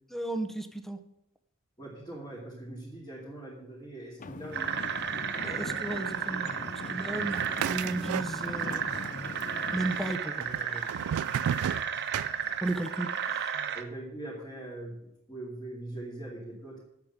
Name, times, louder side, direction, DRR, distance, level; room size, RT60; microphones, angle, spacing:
voice 1, 0.1-1.0 5.4-8.9 9.7-10.9 12.6-13.5, right 1 dB, ahead, 8 dB, 0.8 m, -35 dB
voice 2, 1.8-4.8 13.7-16.8, right 1 dB, 20° left, -6 dB, 2.7 m, -42 dB
sound 1, 4.2-10.2, left 3 dB, 35° left, 0.5 m, -41 dB
sound 2, 4.5-13.8, right 7 dB, 50° right, 0.9 m, -33 dB
sound 3, 7.3-8.8 9.0-9.8 10.4-12.9, right 9 dB, 70° right, 0.3 m, -33 dB
8.5 x 7.2 x 8.8 m, 0.80 s
head